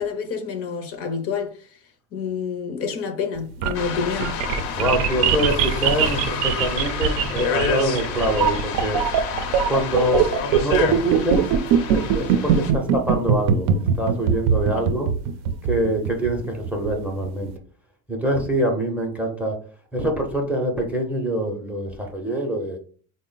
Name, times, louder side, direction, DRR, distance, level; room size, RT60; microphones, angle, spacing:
voice 1, 0.0-1.5 2.1-4.3 14.7-14.9, left 6 dB, 45° left, 0.6 m, -28 dB
sound 1, 3.4-17.5, right 7 dB, 75° right, 0.5 m, -22 dB
sound 2, 3.7-12.7, left 6 dB, 70° left, 0.8 m, -29 dB
voice 2, 4.7-9.0 9.7-11.4 11.9-13.7 14.0-15.1 15.7-17.5 18.1-19.5 19.9-22.8, equal, 5° right, 0.6 m, -25 dB
3.8 x 2.1 x 3.8 m
cardioid pair, 135°, 34 cm